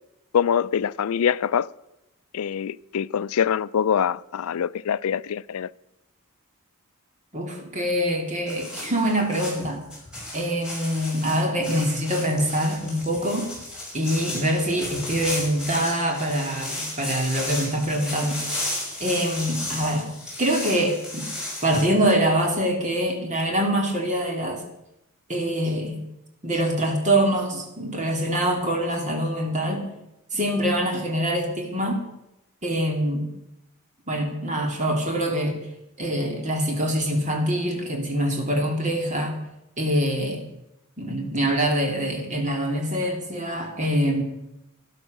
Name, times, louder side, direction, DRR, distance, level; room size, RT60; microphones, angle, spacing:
voice 1, 0.3-1.7 2.3-5.7, left 8 dB, 75° left, 0.4 m, -24 dB
voice 2, 7.3-9.8 10.3-13.5 13.9-18.4 19.0-20.1 20.4-21.3 21.6-24.6 25.3-26.0 26.4-29.9 30.3-32.0 32.6-33.3 34.1-35.6 36.0-39.4 39.8-40.4 41.0-44.2, right 1 dB, 35° right, 2.6 m, -24 dB
sound 1, 8.5-21.8, left 1 dB, 5° right, 5.7 m, -34 dB
12.5 x 11.5 x 6.6 m
head